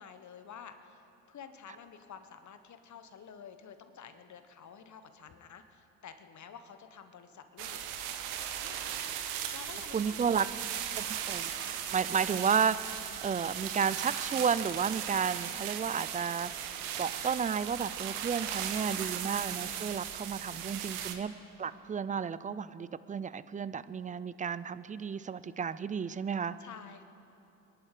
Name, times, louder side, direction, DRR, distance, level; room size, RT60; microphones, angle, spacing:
voice 1, 0.0-7.8 8.6-8.9 9.5-10.7 18.7-19.0 20.5-20.9 26.6-27.0, left 7 dB, 45° left, 8 dB, 1.3 m, -50 dB
sound 1, 7.6-21.1, right 9 dB, 70° right, 1.3 m, -37 dB
voice 2, 9.9-10.5 11.0-16.7 17.0-21.3 21.6-26.6, right 6 dB, 20° right, 16 dB, 0.5 m, -32 dB
24.0 x 11.0 x 5.0 m, 2.9 s
hypercardioid pair, 60°, 40 cm